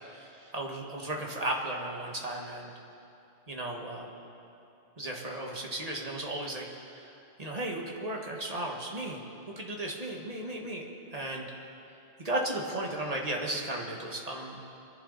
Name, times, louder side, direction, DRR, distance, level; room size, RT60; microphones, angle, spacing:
voice 1, 0.1-2.7 3.5-4.2 5.0-9.2 9.5-11.5 12.2-14.6, right 1 dB, 35° right, -1 dB, 1.7 m, -35 dB
24.0 x 11.0 x 4.0 m, 2.8 s
omnidirectional pair, 1.2 m